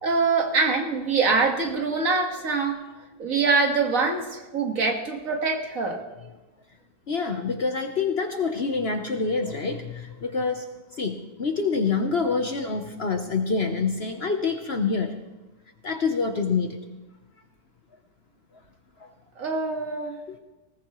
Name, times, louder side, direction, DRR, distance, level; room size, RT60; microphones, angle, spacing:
voice 1, 0.0-2.8 3.2-6.0 19.4-20.2, right 4 dB, 55° right, 3 dB, 2.1 m, -24 dB
voice 2, 7.1-10.7 11.0-15.2 15.8-16.8 19.0-19.1 19.5-19.6 20.3-20.4, left 4 dB, 45° left, 6 dB, 1.0 m, -26 dB
19.5 x 18.5 x 3.1 m, 1.1 s
omnidirectional pair, 1.7 m